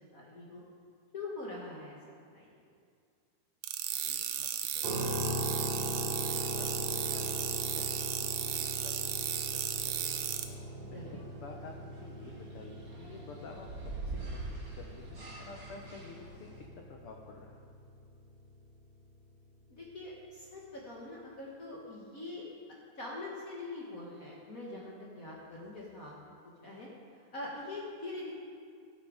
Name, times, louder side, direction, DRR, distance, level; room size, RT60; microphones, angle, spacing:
voice 1, 0.1-0.6 1.1-2.6 10.9-11.1 19.7-22.5 23.0-26.1 26.6-26.9 27.3-28.3, left 2 dB, 55° left, -4 dB, 0.9 m, -43 dB
sound 1, 3.6-10.4, right 10 dB, 85° right, 1.5 m, -35 dB
voice 2, 3.9-4.5 4.7-5.5 6.5-8.9 9.5-10.2 10.9-13.7 14.0-16.5 16.7-17.6, left 4 dB, 85° left, 1 dB, 1.2 m, -51 dB
sound 2, 4.8-18.8, equal, 20° right, 2.8 m, -40 dB
sound 3, 9.7-16.7, right 2 dB, 40° right, 1.5 m, -45 dB
16.5 x 7.1 x 4.9 m, 2.2 s
omnidirectional pair, 3.7 m